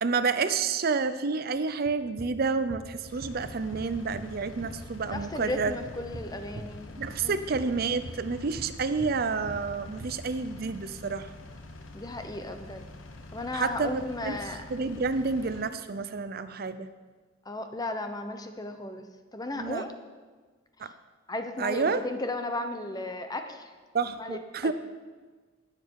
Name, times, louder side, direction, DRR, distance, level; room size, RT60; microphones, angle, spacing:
voice 1, 0.0-5.7 7.0-11.3 13.5-14.4 14.7-16.9 19.6-19.8 20.8-20.9 21.6-22.0 23.9-24.7, right 4 dB, 50° right, 12 dB, 0.5 m, -29 dB
sound 1, 1.9-4.4 4.6-6.6 7.0-9.2 9.5-10.1, right 2 dB, 80° right, 1.2 m, -42 dB
Engine, 3.0-15.7, left 2 dB, 85° left, 1.0 m, -46 dB
voice 2, 5.1-6.9 7.2-7.4 11.9-12.9 13.3-14.6 17.4-19.9 21.3-23.7 24.2-24.7, left 2 dB, 20° left, 7 dB, 0.9 m, -35 dB
20.0 x 7.7 x 4.7 m, 1.4 s
head